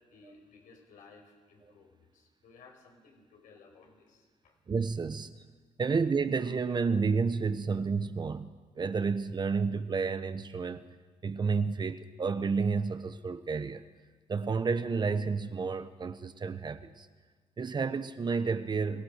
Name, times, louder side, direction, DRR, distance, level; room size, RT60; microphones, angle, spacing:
voice 1, 0.0-4.6, left 4 dB, 85° left, 5.1 m, -57 dB
voice 2, 4.7-5.4 5.8-8.5 8.8-10.9 11.2-13.8 14.3-17.1 17.6-19.0, right 5 dB, 35° right, 1.0 m, -30 dB
23.0 x 17.5 x 6.5 m
cardioid pair, 105°, 13 cm